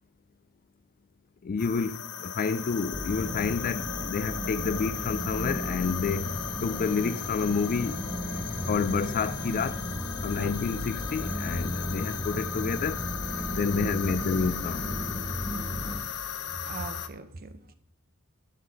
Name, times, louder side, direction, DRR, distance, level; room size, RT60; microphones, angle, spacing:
voice 1, 1.4-6.3 6.6-8.0 8.7-9.8 10.2-13.0 13.5-14.9, left 5 dB, 40° left, 0.3 m, -29 dB
sound 1, 1.6-17.1, left 9 dB, 85° left, 0.8 m, -37 dB
sound 2, 2.9-16.0, equal, 20° left, 0.9 m, -35 dB
sound 3, 5.5-15.0, equal, 15° right, 1.5 m, -45 dB
voice 2, 13.3-14.2 16.5-17.7, right 3 dB, 40° right, 0.8 m, -40 dB
11.5 x 5.8 x 4.8 m
head